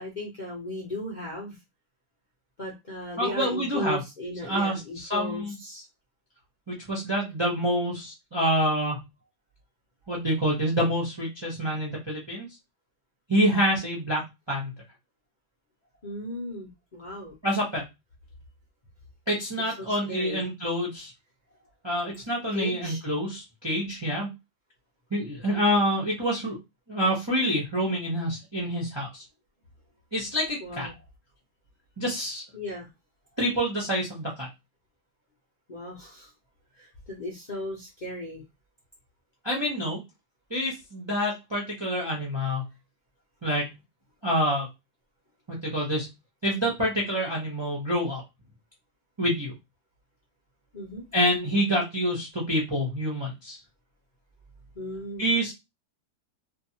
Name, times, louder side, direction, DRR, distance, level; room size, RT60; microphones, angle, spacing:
voice 1, 0.0-1.6 2.6-5.8 16.0-17.3 19.8-20.4 22.5-23.0 30.6-30.9 32.5-32.9 35.7-36.3 36.8-38.4 50.7-51.1 54.7-55.3, left 1 dB, 45° left, -4 dB, 0.6 m, -36 dB
voice 2, 3.2-4.0 4.4-5.5 6.7-9.0 10.1-12.5 13.3-14.7 17.4-17.8 19.3-21.1 21.8-24.3 25.1-26.6 26.9-29.2 30.1-30.9 32.0-32.4 33.4-34.5 39.4-40.0 40.5-42.6 43.4-43.7 44.2-44.7 45.5-46.1 46.4-48.2 49.2-49.5 51.1-53.6 55.2-55.5, equal, 30° right, -3 dB, 0.5 m, -27 dB
2.6 x 2.4 x 2.8 m, 0.22 s
omnidirectional pair, 1.8 m